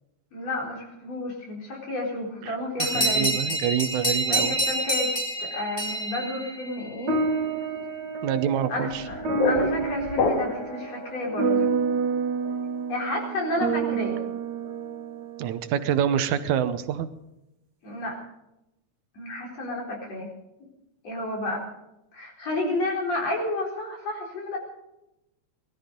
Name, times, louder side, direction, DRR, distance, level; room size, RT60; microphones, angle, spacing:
voice 1, 0.3-3.3 4.3-5.1 5.4-7.2 8.7-11.7 12.9-14.2 17.8-18.2 19.2-20.3 21.0-21.7 22.1-24.6, left 1 dB, 60° left, -1 dB, 5.3 m, -31 dB
voice 2, 2.4-4.6 8.2-9.0 15.4-17.1, right 9 dB, 80° right, 11 dB, 2.3 m, -26 dB
sound 1, 2.8-7.0, right 1 dB, 10° left, 4.1 m, -27 dB
sound 2, 7.1-15.7, right 4 dB, 40° right, 2.3 m, -29 dB
sound 3, 8.9-10.8, left 4 dB, 85° left, 3.6 m, -27 dB
19.5 x 13.0 x 5.3 m, 0.89 s
omnidirectional pair, 3.4 m